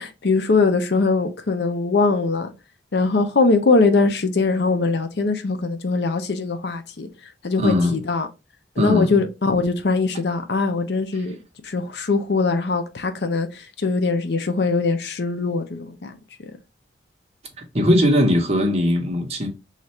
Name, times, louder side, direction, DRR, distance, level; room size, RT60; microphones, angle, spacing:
voice 1, 0.0-2.5 2.9-7.1 7.4-8.3 8.8-11.4 11.6-16.1, left 3 dB, 70° left, 0.6 m, -21 dB
voice 2, 7.6-8.0 8.8-9.1 17.7-19.5, left 1 dB, 35° right, 0.9 m, -19 dB
3.2 x 2.4 x 4.2 m
head